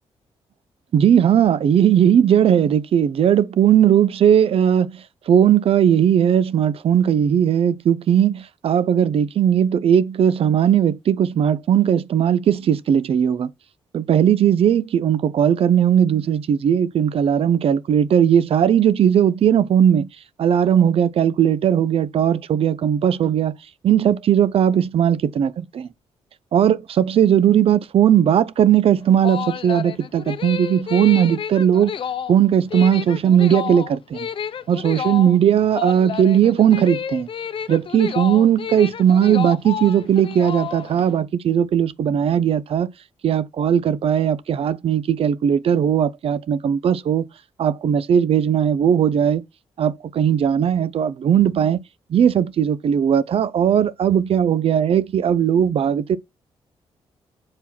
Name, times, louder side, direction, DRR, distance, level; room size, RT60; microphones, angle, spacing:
voice 1, 0.9-13.5 13.9-20.1 20.4-23.5 23.8-25.9 26.5-31.9 32.3-34.3 34.7-37.3 37.7-42.9 43.2-47.3 47.6-49.4 49.8-51.8 52.1-56.2, right 9 dB, 65° right, 0.7 m, -18 dB
sound 1, 29.0-41.1, left 7 dB, 55° left, 0.7 m, -30 dB
7.7 x 4.7 x 4.2 m
cardioid pair, 75°, 11 cm